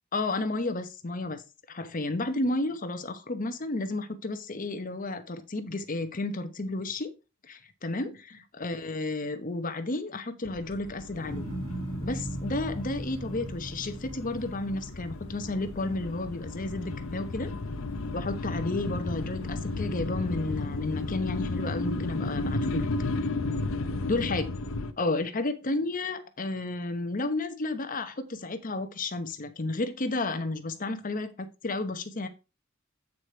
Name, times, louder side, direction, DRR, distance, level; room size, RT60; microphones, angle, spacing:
voice 1, 0.1-7.1 7.4-11.5 12.0-17.5 18.1-22.9 24.1-24.4 25.0-32.3, left 2 dB, 40° left, 1.0 m, -32 dB
sound 1, 10.5-24.9, left 2 dB, 85° left, 0.8 m, -34 dB
sound 2, 11.2-17.5 18.0-18.6, right 1 dB, 80° right, 2.9 m, -39 dB
8.5 x 4.9 x 4.3 m
head